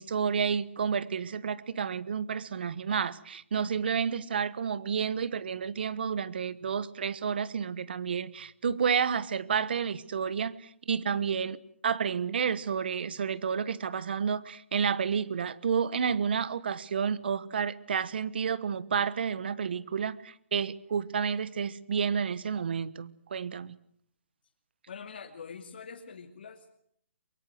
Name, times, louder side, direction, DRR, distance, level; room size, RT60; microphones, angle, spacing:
voice 1, 0.0-11.6 11.8-23.8, right 6 dB, 50° right, 18 dB, 1.3 m, -30 dB
voice 2, 24.9-26.7, left 6 dB, 45° left, 3 dB, 2.6 m, -44 dB
23.5 x 23.0 x 7.9 m, 0.68 s
hypercardioid pair, 170°, 7 cm